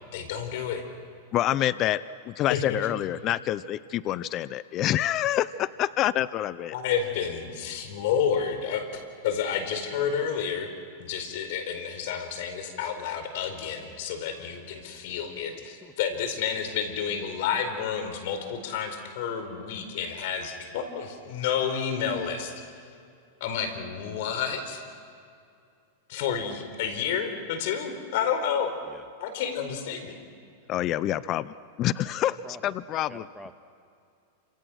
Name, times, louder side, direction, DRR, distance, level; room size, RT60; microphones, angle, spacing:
voice 1, 0.1-0.8 2.5-2.8 6.7-8.9 9.2-10.7 11.0-22.5 23.4-24.8 26.1-28.7 29.2-30.2, left 7 dB, 65° left, 8 dB, 4.5 m, -30 dB
voice 2, 1.3-2.0 2.3-6.7 30.7-33.3, left 13 dB, 35° left, 17 dB, 0.6 m, -27 dB
voice 3, 15.5-15.9 28.8-29.1 32.0-32.8 33.1-33.5, equal, 5° left, 7 dB, 1.7 m, -47 dB
28.5 x 27.0 x 6.4 m, 2.4 s
hypercardioid pair, 130°, 0 cm